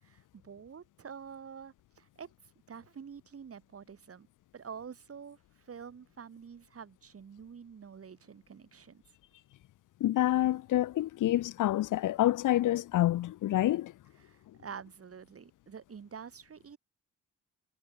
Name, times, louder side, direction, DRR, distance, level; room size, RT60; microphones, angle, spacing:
voice 1, 0.0-2.3 2.7-4.3 4.5-9.0 14.2-16.8, right 6 dB, 50° right, 7.4 m, -47 dB
voice 2, 10.0-13.9, left 14 dB, 80° left, 0.8 m, -27 dB
cardioid pair, 110°, 31 cm